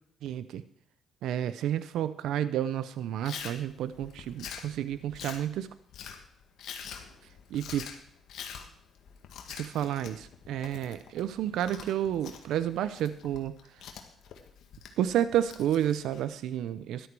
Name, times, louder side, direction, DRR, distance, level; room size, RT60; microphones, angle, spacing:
voice 1, 0.2-0.6 1.2-5.7 7.5-7.8 9.5-13.5 15.0-17.1, right 11 dB, 80° right, 14 dB, 0.6 m, -30 dB
Chewing mastication, 3.2-16.3, left 7 dB, 75° left, 1.7 m, -46 dB
13.0 x 11.5 x 4.7 m, 0.65 s
cardioid pair, 90°, 0 cm